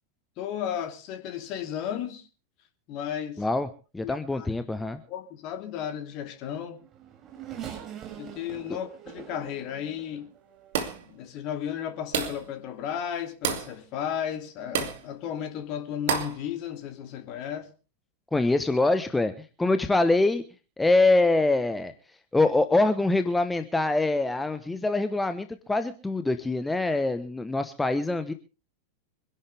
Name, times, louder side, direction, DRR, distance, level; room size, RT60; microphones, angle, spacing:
voice 1, 0.4-2.3 2.9-3.4 4.0-4.5 5.1-6.8 8.2-10.3 11.1-17.7, left 9 dB, 40° left, 2.8 m, -34 dB
voice 2, 3.4-3.7 3.9-5.0 8.7-8.8 18.3-20.4 20.8-21.9 22.3-28.3, left 2 dB, 10° left, 1.1 m, -24 dB
Race car auto racing / Accelerating revving vroom, 6.5-11.0 11.7-11.8 12.9-13.1, right 9 dB, 25° right, 6.7 m, -43 dB
sound 1, 10.7-11.1 12.1-12.5 13.4-13.7 14.7-15.0 16.1-16.4, right 7 dB, 55° right, 2.6 m, -29 dB
25.5 x 11.5 x 3.5 m
figure-of-eight pair, 90°, 0 cm